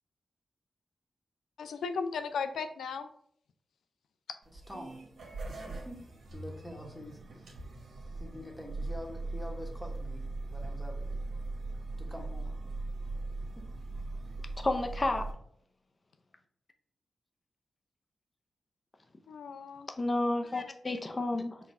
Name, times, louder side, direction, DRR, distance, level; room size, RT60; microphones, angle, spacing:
voice 1, 1.6-3.1 19.3-19.9, left 5 dB, 85° left, 9 dB, 0.4 m, -36 dB
sound 1, 4.4-15.3, right 2 dB, 75° right, 1.0 m, -40 dB
voice 2, 4.5-5.0 5.5-7.5 8.1-10.2 10.5-11.1 12.0-12.5 13.6-13.7, equal, 10° left, 1 dB, 1.2 m, -46 dB
voice 3, 14.6-15.3 20.0-21.6, left 2 dB, 40° left, 6 dB, 0.6 m, -30 dB
4.2 x 2.3 x 4.1 m, 0.67 s
cardioid pair, 45°, 0 cm